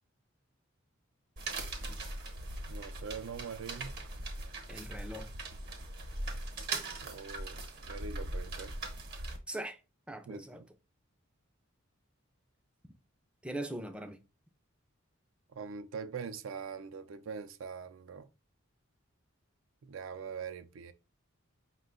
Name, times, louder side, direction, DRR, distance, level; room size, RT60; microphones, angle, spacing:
sound 1, 1.4-9.4, right 2 dB, 50° right, 0.8 m, -40 dB
voice 1, 2.7-4.0 7.0-7.6 7.9-8.7 10.3-10.7 15.5-18.3 19.8-20.9, right 6 dB, 70° right, 0.4 m, -43 dB
voice 2, 4.7-5.3 9.5-9.8 10.1-10.6 13.4-14.2, right 1 dB, 5° right, 0.4 m, -40 dB
5.1 x 2.2 x 3.7 m
head